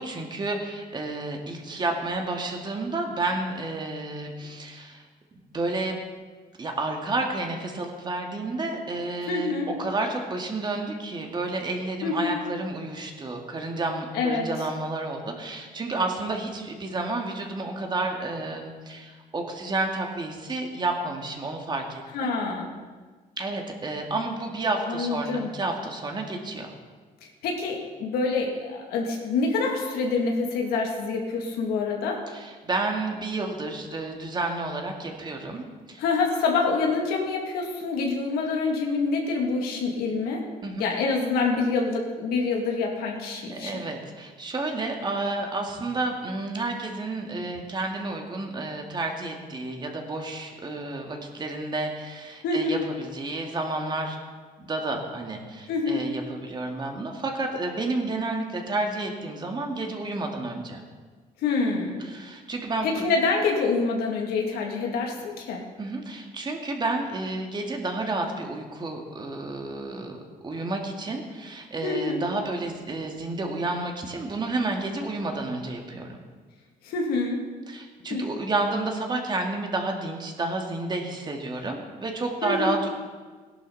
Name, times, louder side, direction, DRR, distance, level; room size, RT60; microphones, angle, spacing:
voice 1, 0.0-5.0 5.3-6.0 6.6-9.5 9.8-22.3 23.4-26.7 32.3-36.0 40.6-40.8 43.5-54.2 54.6-60.8 62.1-63.0 65.8-76.2 77.7-82.9, right 2 dB, 30° right, 2 dB, 2.1 m, -30 dB
voice 2, 9.3-9.7 12.0-12.4 14.1-14.5 22.1-22.7 24.9-25.5 27.4-32.2 36.0-40.4 40.8-43.8 52.4-52.8 55.7-56.0 61.4-62.0 62.8-65.6 71.8-72.2 76.8-77.5 78.1-78.3 82.4-82.8, left 4 dB, 90° left, 0 dB, 2.5 m, -26 dB
17.0 x 11.5 x 4.1 m, 1.4 s
cardioid pair, 115°, 15 cm